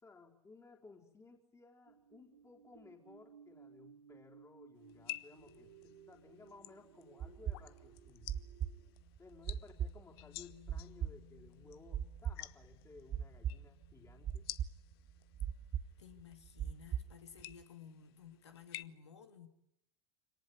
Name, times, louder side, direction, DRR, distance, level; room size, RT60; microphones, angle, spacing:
voice 1, 0.0-8.3 9.2-14.5, left 4 dB, 20° left, 0 dB, 4.2 m, -59 dB
sound 1, 1.9-8.9, right 8 dB, 80° right, 2.1 m, -61 dB
sound 2, 4.9-18.8, left 16 dB, 60° left, 0.9 m, -53 dB
sound 3, 7.2-17.5, right 9 dB, 35° right, 1.3 m, -40 dB
voice 2, 16.0-19.5, left 7 dB, 80° left, 6 dB, 2.9 m, -55 dB
25.5 x 18.5 x 9.7 m, 0.77 s
figure-of-eight pair, 80°, 14 cm